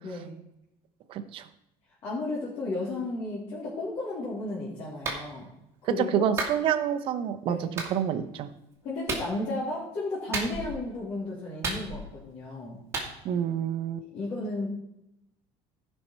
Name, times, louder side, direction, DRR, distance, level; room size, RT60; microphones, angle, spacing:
voice 1, 0.0-0.3 2.0-5.5 5.8-6.3 7.5-7.7 8.8-12.8 14.1-14.8, left 2 dB, 50° left, -7 dB, 3.0 m, -33 dB
voice 2, 1.1-1.4 6.1-8.5 13.2-14.0, right 9 dB, 45° right, 9 dB, 0.8 m, -28 dB
Clapping, 5.0-5.2 6.4-6.6 7.8-7.9 9.1-9.3 10.3-10.8 11.6-12.2 12.9-13.1, right 3 dB, 20° right, 2.0 m, -31 dB
15.0 x 5.5 x 4.4 m, 0.82 s
cardioid pair, 160°, 12 cm